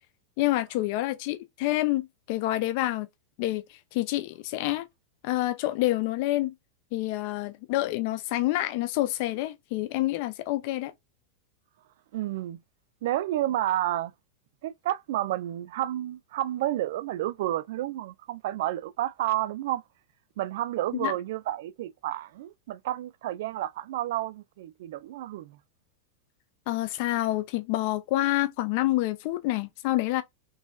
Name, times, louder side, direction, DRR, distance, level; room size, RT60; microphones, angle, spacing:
voice 1, 0.4-3.1 3.4-4.9 5.2-6.5 6.9-10.9 21.0-21.1 26.7-30.2, left 16 dB, 45° left, 0.4 m, -27 dB
voice 2, 12.1-12.6 13.0-14.1 14.6-19.8 20.4-25.6, right 14 dB, 55° right, 0.4 m, -30 dB
4.0 x 3.7 x 2.4 m
figure-of-eight pair, 90°, 0 cm